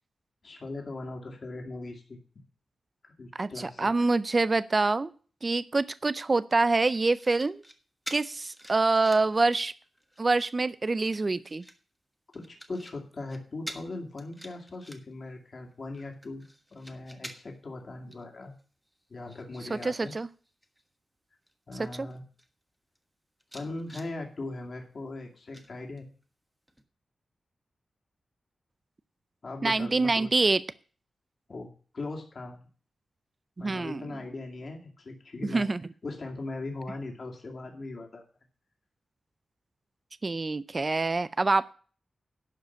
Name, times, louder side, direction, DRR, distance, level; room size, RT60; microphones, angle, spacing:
voice 1, 0.4-2.2 3.0-3.9 12.3-18.5 19.1-20.1 21.7-22.2 23.5-26.1 29.4-30.3 31.5-32.6 33.6-35.7 36.0-38.2, left 2 dB, 45° left, 1 dB, 2.3 m, -39 dB
voice 2, 3.4-5.1 5.4-7.6 8.1-9.7 10.2-11.6 19.7-20.3 22.0-22.1 29.6-30.6 33.6-34.2 35.4-35.8 40.2-41.7, right 3 dB, 30° right, 15 dB, 0.5 m, -26 dB
sound 1, 6.9-7.7 8.1-9.4 9.8-10.3 10.9-11.8 12.3-12.9 13.2-13.4 13.7-13.8 14.2-15.3 15.7-17.6 18.1-18.2 18.6-20.1 20.4-20.8 21.5-21.6 21.8-22.5 22.9-23.0 23.4-24.1 25.5-26.2 26.7-26.8, equal, 5° right, 1.3 m, -47 dB
11.5 x 5.1 x 8.0 m, 0.40 s
wide cardioid pair, 140°, 0 cm